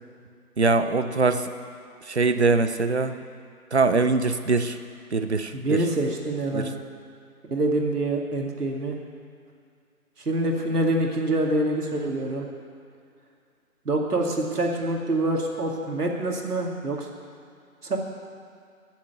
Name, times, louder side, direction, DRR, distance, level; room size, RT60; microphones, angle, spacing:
voice 1, 0.6-1.5 2.1-3.1 3.7-4.8 5.1-5.8 6.5-6.7, right 3 dB, 45° right, 9 dB, 0.7 m, -22 dB
voice 2, 5.5-6.8 7.5-8.9 10.3-12.5 13.9-17.1 17.8-18.0, right 2 dB, 85° right, 0 dB, 2.4 m, -25 dB
14.0 x 7.4 x 8.0 m, 2.3 s
figure-of-eight pair, 170°, 45 cm